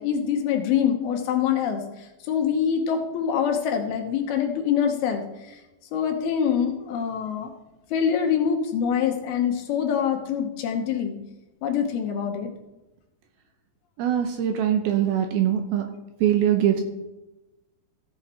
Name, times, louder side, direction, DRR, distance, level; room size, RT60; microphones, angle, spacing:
voice 1, 0.0-5.6 5.9-7.5 7.9-11.2 11.6-12.5, left 8 dB, 70° left, 4 dB, 2.6 m, -25 dB
voice 2, 14.0-15.9 16.2-16.8, right 10 dB, 75° right, 5 dB, 2.3 m, -22 dB
15.5 x 6.4 x 4.3 m, 1.0 s
omnidirectional pair, 5.0 m